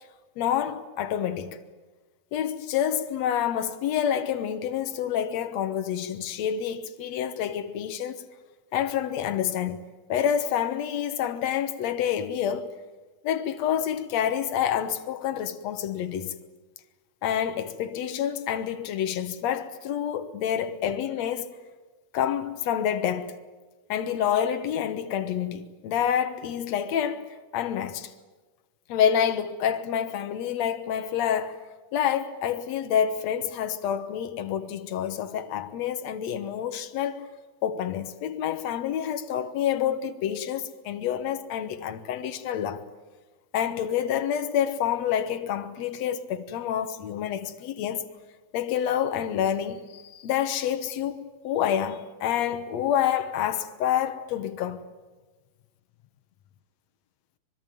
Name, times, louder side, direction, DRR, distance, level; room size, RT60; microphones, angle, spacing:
voice 1, 0.4-1.6 2.3-8.2 8.7-12.7 13.2-16.3 17.2-21.5 22.1-23.4 23.9-28.1 28.9-31.6 31.9-37.3 37.6-42.8 43.5-48.1 48.5-54.8, left 9 dB, 75° left, 1.6 m, -28 dB
25.0 x 22.0 x 9.2 m
omnidirectional pair, 4.6 m